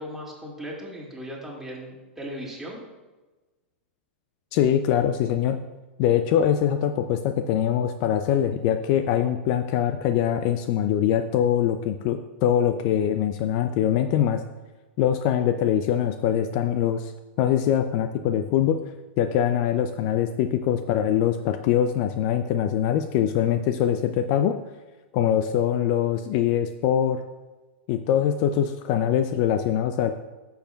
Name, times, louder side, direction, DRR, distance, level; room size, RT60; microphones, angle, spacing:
voice 1, 0.0-2.8, equal, 5° right, -4 dB, 2.2 m, -37 dB
voice 2, 4.5-5.6 6.0-14.4 15.0-17.1 17.4-18.8 19.2-24.6 25.1-27.2 27.9-30.1, left 10 dB, 45° left, 8 dB, 0.4 m, -23 dB
11.5 x 7.0 x 2.3 m, 1.2 s
hypercardioid pair, 110°, 6 cm